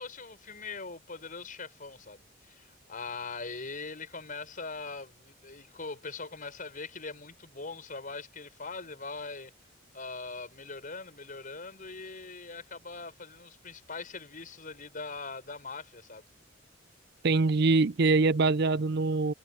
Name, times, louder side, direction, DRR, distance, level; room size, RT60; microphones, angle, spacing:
voice 1, 0.0-9.5 9.9-16.3, left 4 dB, 45° left, 6.3 m, -41 dB
voice 2, 17.2-19.3, right 3 dB, 60° right, 0.5 m, -24 dB
head